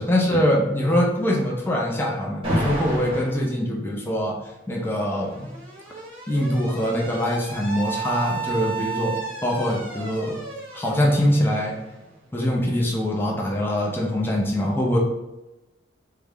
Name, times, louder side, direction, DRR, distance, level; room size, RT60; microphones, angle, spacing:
voice 1, 0.0-4.4 4.7-5.5 6.3-10.4 10.7-11.8 12.3-15.0, equal, 10° left, -2 dB, 0.5 m, -23 dB
Alarm, 2.4-3.4 4.6-12.3, right 2 dB, 30° right, 0.8 m, -32 dB
3.7 x 2.2 x 3.4 m, 0.97 s
head